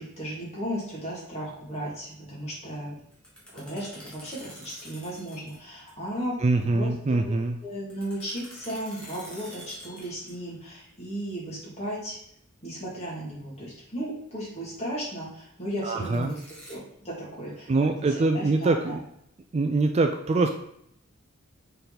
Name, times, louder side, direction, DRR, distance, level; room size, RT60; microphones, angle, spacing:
voice 1, 0.0-3.0 3.5-7.3 7.6-12.2 12.6-16.4 16.7-19.0, equal, 30° left, -5 dB, 2.4 m, -35 dB
sound 1, 3.1-5.6 5.9-6.0 7.9-10.5 15.9-16.8, equal, 5° left, 1.4 m, -47 dB
voice 2, 6.4-7.6 15.8-16.3 17.7-19.0 19.5-20.5, right 3 dB, 30° right, 5 dB, 0.3 m, -24 dB
6.5 x 4.0 x 4.0 m, 0.73 s
head